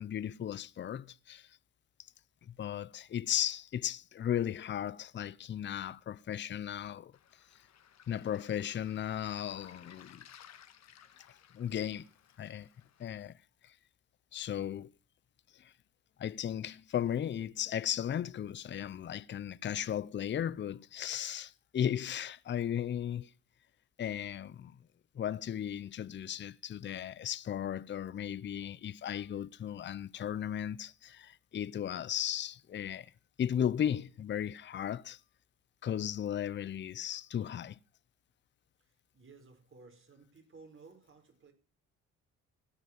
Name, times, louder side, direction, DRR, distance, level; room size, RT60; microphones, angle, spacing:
voice 1, 0.0-1.5 2.5-7.1 8.1-10.2 11.5-12.1 12.4-12.7 13.0-13.3 13.6-13.7 14.3-14.9 15.6-15.7 16.2-23.3 24.0-24.8 25.1-33.1 33.4-35.2 35.8-37.8, left 10 dB, 40° left, 0.6 m, -36 dB
Waves surf, 7.1-13.1, left 9 dB, 60° left, 1.5 m, -58 dB
voice 2, 38.8-41.5, right 4 dB, 40° right, 4.7 m, -57 dB
16.5 x 5.8 x 9.4 m
cardioid pair, 90°, 30 cm